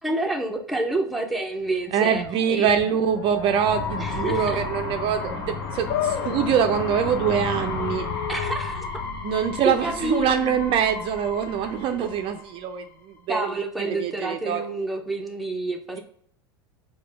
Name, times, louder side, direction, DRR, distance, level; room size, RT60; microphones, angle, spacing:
voice 1, 0.0-2.2 2.5-2.7 4.0-4.6 8.3-9.1 9.6-10.3 13.3-16.0, right 2 dB, ahead, 1 dB, 0.6 m, -28 dB
sound 1, 1.9-12.8, left 4 dB, 80° left, 0.8 m, -33 dB
voice 2, 1.9-8.1 9.2-12.8 13.3-14.6, right 8 dB, 45° right, 7 dB, 0.4 m, -24 dB
sound 2, 5.9-12.3, left 10 dB, 50° left, 0.4 m, -35 dB
4.8 x 2.2 x 3.3 m, 0.66 s
hypercardioid pair, 95°, 13 cm